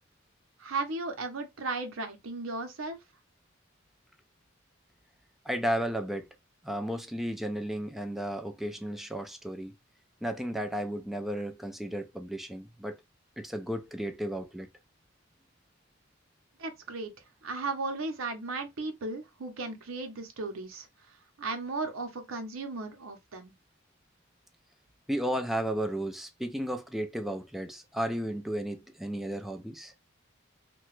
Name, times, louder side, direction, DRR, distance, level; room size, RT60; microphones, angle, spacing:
voice 1, 0.6-3.0 16.6-17.1 17.4-23.5, right 3 dB, 80° right, 0.7 m, -36 dB
voice 2, 5.5-6.3 6.6-9.7 10.2-13.0 13.4-14.7 25.1-29.9, equal, ahead, 0.4 m, -33 dB
2.9 x 2.2 x 3.1 m
head